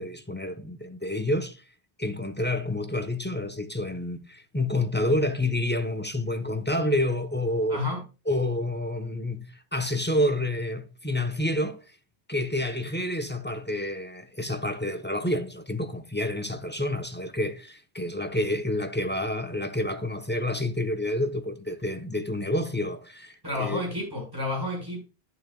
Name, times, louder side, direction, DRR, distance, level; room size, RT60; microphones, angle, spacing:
voice 1, 0.0-1.6 2.0-7.8 8.3-9.5 9.7-11.8 12.3-23.8, left 1 dB, 10° left, 0.9 m, -28 dB
voice 2, 7.7-8.0 23.4-25.0, left 2 dB, 20° right, 5.5 m, -30 dB
11.0 x 9.1 x 2.3 m
omnidirectional pair, 1.1 m